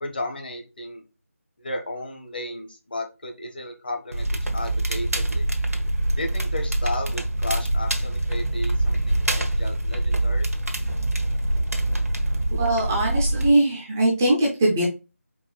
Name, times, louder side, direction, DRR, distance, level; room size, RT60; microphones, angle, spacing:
voice 1, 0.0-1.0 1.6-5.5 6.2-10.5, left 2 dB, 40° left, 3 dB, 0.9 m, -34 dB
Crackle, 4.1-13.5, right 1 dB, 80° right, 1.1 m, -24 dB
voice 2, 12.6-14.8, right 1 dB, 10° right, -3 dB, 0.5 m, -21 dB
4.7 x 2.6 x 4.3 m, 0.29 s
figure-of-eight pair, 165°, 8 cm